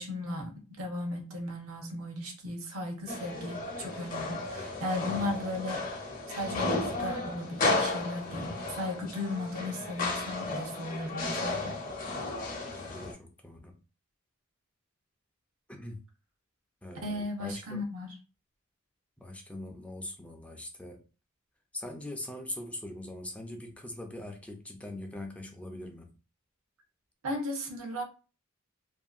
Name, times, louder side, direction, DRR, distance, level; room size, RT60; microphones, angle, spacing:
voice 1, 0.0-5.9 6.3-11.8 17.0-18.1 27.2-28.0, left 1 dB, 70° right, 0.8 m, -36 dB
sound 1, 3.1-13.1, left 2 dB, 40° left, 0.7 m, -34 dB
voice 2, 12.7-13.8 15.7-16.0 16.8-17.8 19.2-21.0 21.7-26.2, left 1 dB, 5° left, 0.4 m, -42 dB
2.6 x 2.5 x 2.4 m
head